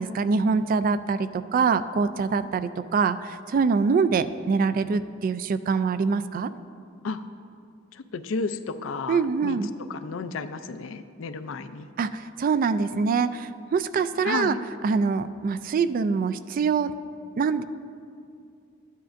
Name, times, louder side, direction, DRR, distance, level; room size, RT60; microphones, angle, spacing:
voice 1, 0.0-6.5 9.1-9.7 12.0-14.6 14.8-16.9 17.4-17.6, right 5 dB, 45° right, 13 dB, 0.3 m, -24 dB
voice 2, 7.9-9.6 9.9-11.9 14.2-14.6, left 4 dB, 75° left, 11 dB, 0.4 m, -32 dB
13.0 x 10.0 x 2.5 m, 2.4 s
head